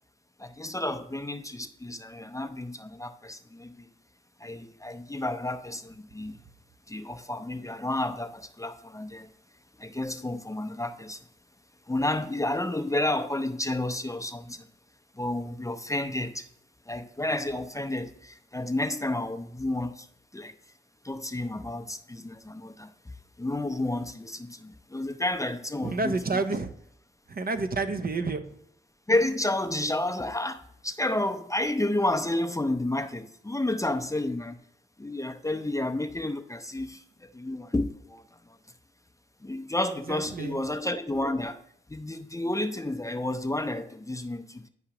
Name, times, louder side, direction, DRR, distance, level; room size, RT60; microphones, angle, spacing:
voice 1, 0.4-3.9 4.4-6.4 6.9-9.3 9.8-11.3 11.9-14.7 15.2-16.5 16.9-20.1 20.3-20.5 21.0-23.1 23.4-26.4 29.1-34.6 35.0-37.0 37.3-38.6 39.4-41.6 41.9-44.7, left 1 dB, 15° left, 0.5 m, -31 dB
voice 2, 25.8-26.7 27.3-28.4 40.1-40.6, right 3 dB, 50° right, 0.6 m, -29 dB
9.9 x 4.8 x 2.9 m
cardioid pair, 45°, 20 cm